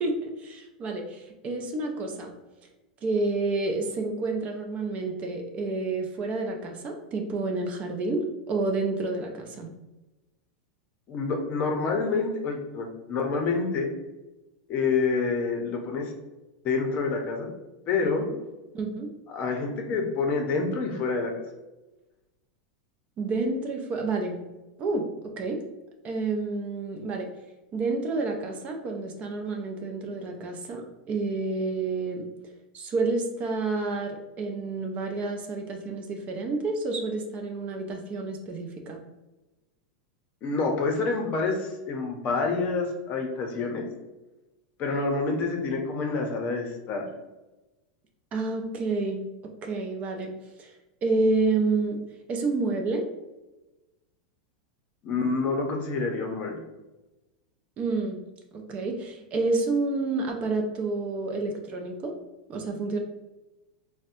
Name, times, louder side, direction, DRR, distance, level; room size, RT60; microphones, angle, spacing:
voice 1, 0.0-2.3 3.0-9.7 18.7-19.1 23.2-24.4 24.8-25.6 26.0-27.3 27.7-32.3 32.7-39.0 48.3-49.2 49.6-50.3 50.6-50.7 51.0-52.0 52.3-53.0 57.8-58.2 58.5-62.1 62.5-63.0, right 3 dB, 35° right, 3 dB, 0.5 m, -29 dB
voice 2, 11.1-13.9 14.7-16.1 16.6-17.5 17.9-18.3 19.3-21.3 40.4-43.9 44.8-47.0 55.0-56.6, left 4 dB, 40° left, 2 dB, 0.7 m, -27 dB
4.1 x 2.1 x 2.5 m, 1.1 s
supercardioid pair, 130°, 4 cm